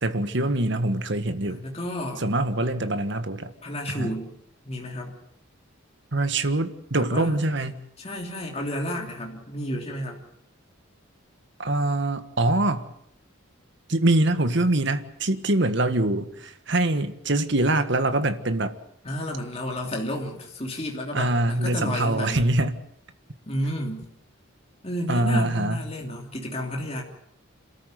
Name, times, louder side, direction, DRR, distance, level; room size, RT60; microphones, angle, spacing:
voice 1, 0.0-1.6 2.2-3.5 3.9-4.1 6.1-7.7 11.6-12.9 13.9-18.8 21.1-22.8 25.1-25.8, right 2 dB, 55° right, 9 dB, 1.6 m, -24 dB
voice 2, 1.4-2.3 3.6-4.3 4.6-5.1 7.0-7.4 8.0-10.2 19.0-22.4 23.5-24.0 24.8-27.0, left 1 dB, 30° left, 0 dB, 3.2 m, -31 dB
26.5 x 13.5 x 9.2 m, 0.75 s
head